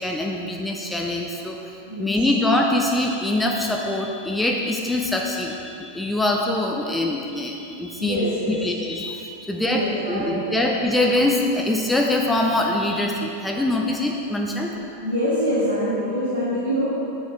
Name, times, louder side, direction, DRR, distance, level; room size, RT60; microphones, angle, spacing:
voice 1, 0.0-1.6 2.0-9.8 10.1-14.7, left 1 dB, 5° left, 0 dB, 0.7 m, -23 dB
voice 2, 8.0-8.6 9.6-10.6 15.0-16.9, equal, 85° right, -12 dB, 2.2 m, -25 dB
10.5 x 8.2 x 3.3 m, 2.6 s
figure-of-eight pair, 90°, 0 cm